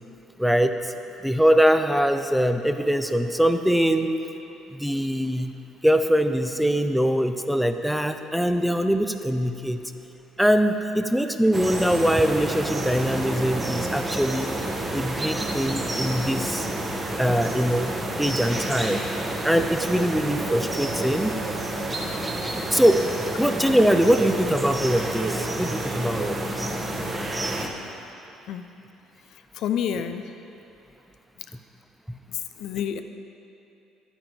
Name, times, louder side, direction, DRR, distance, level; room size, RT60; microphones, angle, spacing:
voice 1, 0.4-0.9 1.2-4.1 4.7-5.5 5.8-9.8 10.4-14.5 14.9-16.7 17.2-19.1 19.4-21.4 22.7-23.0 23.4-26.6 32.1-32.2, equal, ahead, 7 dB, 0.7 m, -22 dB
sound 1, 11.5-27.7, right 1 dB, 25° right, 1.3 m, -29 dB
sound 2, 15.6-16.0 16.4-16.7 17.0-17.1 18.3-18.9 19.2-22.3 23.4-25.5 25.7-26.5, right 6 dB, 50° right, 0.6 m, -38 dB
voice 2, 29.2-30.3 32.3-33.0, left 8 dB, 60° left, 8 dB, 0.4 m, -29 dB
11.5 x 8.8 x 4.7 m, 2.9 s
hypercardioid pair, 55°, 0 cm